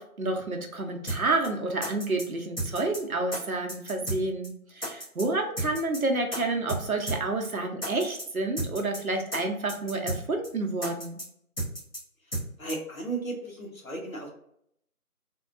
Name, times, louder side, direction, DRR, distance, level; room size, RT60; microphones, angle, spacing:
voice 1, 0.0-11.2, right 2 dB, 70° right, 3 dB, 0.8 m, -29 dB
sound 1, 1.1-1.2 1.4-1.5 1.8-2.2 2.6-3.0 3.3-3.4 3.7-4.2 4.4-4.5 4.8-5.2 5.6-6.0 6.3-6.4 6.7-6.8 7.1-7.2 7.4-7.5 7.8-8.2 8.6-9.0 9.3-9.4 9.7-10.2 10.4-10.5 10.8-11.2 11.6-12.0 12.3-12.4 12.7-12.8, right 1 dB, 40° left, 1.4 m, -32 dB
voice 2, 12.6-14.3, right 3 dB, 65° left, -2 dB, 1.2 m, -35 dB
3.5 x 2.2 x 2.5 m, 0.71 s
figure-of-eight pair, 175°, 44 cm